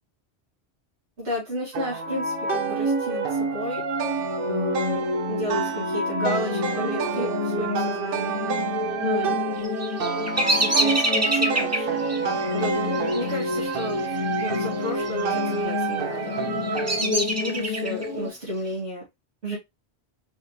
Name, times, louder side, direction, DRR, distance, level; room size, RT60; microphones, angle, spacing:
voice 1, 1.2-3.8 4.5-8.4 9.0-9.6 10.6-12.0 12.5-14.1 14.4-16.3 16.9-19.0 19.4-19.6, equal, 85° right, 2.2 m, -33 dB
sound 1, 1.7-17.0, right 6 dB, 65° right, 0.7 m, -30 dB
sound 2, 2.1-18.3, left 2 dB, 40° right, 1.2 m, -29 dB
Bird vocalization bird call bird song, 9.6-14.6 14.9-15.5 16.1-18.1, right 1 dB, 20° right, 0.5 m, -27 dB
4.9 x 2.8 x 3.0 m
omnidirectional pair, 1.1 m